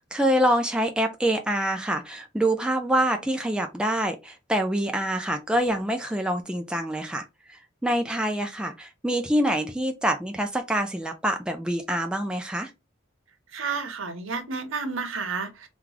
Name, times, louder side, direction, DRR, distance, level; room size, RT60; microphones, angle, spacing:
voice 1, 0.0-12.7, right 1 dB, 5° right, 0.3 m, -26 dB
voice 2, 13.5-15.7, right 5 dB, 75° right, 0.8 m, -31 dB
3.0 x 2.3 x 3.8 m
head